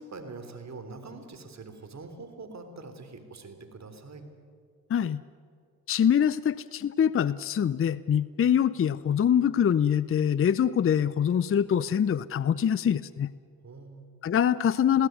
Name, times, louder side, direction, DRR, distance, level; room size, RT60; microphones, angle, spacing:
voice 1, 0.0-4.3 13.6-14.1, right 3 dB, 40° right, 7 dB, 3.5 m, -44 dB
voice 2, 4.9-5.2 5.9-13.3 14.2-15.1, left 8 dB, 35° left, 18 dB, 0.6 m, -24 dB
21.5 x 16.0 x 9.4 m, 2.3 s
hypercardioid pair, 55°, 41 cm